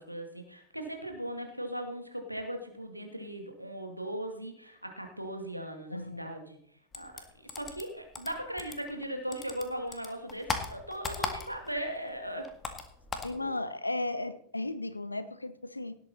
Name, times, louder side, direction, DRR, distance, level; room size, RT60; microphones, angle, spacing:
voice 1, 0.0-6.6 6.9-7.1 7.5-12.5 13.3-13.5, right 1 dB, 90° right, 4 dB, 2.2 m, -38 dB
voice 2, 5.9-6.3 13.2-15.9, left 2 dB, 85° left, 13 dB, 0.9 m, -35 dB
sound 1, 6.9-9.1 9.3-11.8 12.1-13.4, left 4 dB, 20° left, 1.8 m, -37 dB
18.0 x 8.3 x 4.2 m, 0.66 s
figure-of-eight pair, 90°, 0 cm